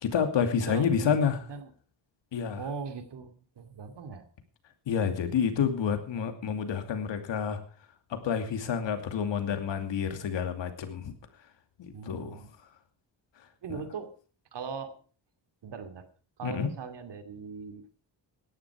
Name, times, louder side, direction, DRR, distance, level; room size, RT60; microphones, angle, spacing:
voice 1, 0.0-1.4 2.3-2.6 4.9-7.6 8.1-11.1 11.8-12.4 13.7-13.8 16.4-16.7, left 7 dB, 75° left, 7 dB, 2.7 m, -29 dB
voice 2, 0.6-1.7 2.6-4.3 11.9-12.5 13.6-14.1 14.5-15.0 15.6-16.1 16.4-17.9, right 5 dB, 65° right, 8 dB, 2.7 m, -40 dB
17.0 x 11.5 x 4.8 m, 0.40 s
cardioid pair, 100°, 45 cm